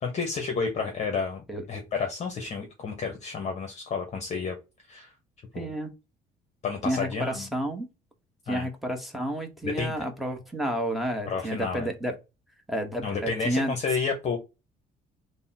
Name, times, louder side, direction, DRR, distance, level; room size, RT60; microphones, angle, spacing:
voice 1, 0.0-4.6 4.9-5.1 5.5-5.7 6.6-7.5 8.5-8.7 9.6-9.9 11.3-11.9 13.0-14.4, left 5 dB, 40° left, 0.9 m, -31 dB
voice 2, 5.5-5.9 6.8-7.9 8.5-12.1 12.7-13.8, right 1 dB, ahead, 1.0 m, -30 dB
3.5 x 2.1 x 4.0 m
cardioid pair, 110°, 17 cm